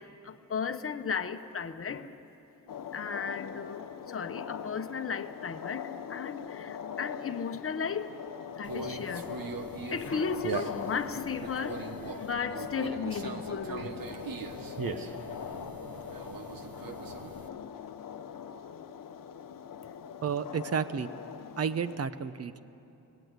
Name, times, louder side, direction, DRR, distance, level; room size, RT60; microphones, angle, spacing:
voice 1, 0.0-2.1 2.9-8.2 8.6-9.3 9.8-14.0, left 6 dB, 40° left, 8 dB, 0.9 m, -35 dB
sound 1, 2.7-22.0, left 8 dB, 65° left, 0.8 m, -42 dB
Conversation, 8.6-17.5, right 5 dB, 70° right, 1.3 m, -40 dB
voice 2, 20.2-21.1 21.6-22.6, right 6 dB, 45° right, 13 dB, 0.8 m, -31 dB
26.5 x 18.5 x 8.2 m, 2.9 s
wide cardioid pair, 160°, 36 cm